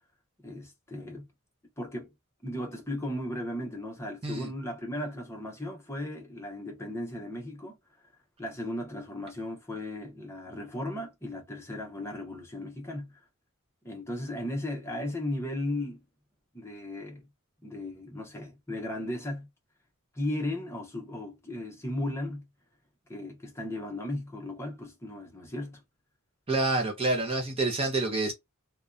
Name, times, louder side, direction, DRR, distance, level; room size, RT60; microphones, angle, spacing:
voice 1, 0.4-1.3 1.8-2.1 2.4-7.7 8.4-13.1 13.8-16.0 16.5-17.2 17.6-19.5 20.1-22.5 23.1-25.8, left 1 dB, 10° left, 0.7 m, -36 dB
voice 2, 26.5-28.3, right 2 dB, 25° right, 0.6 m, -27 dB
2.6 x 2.2 x 2.3 m
head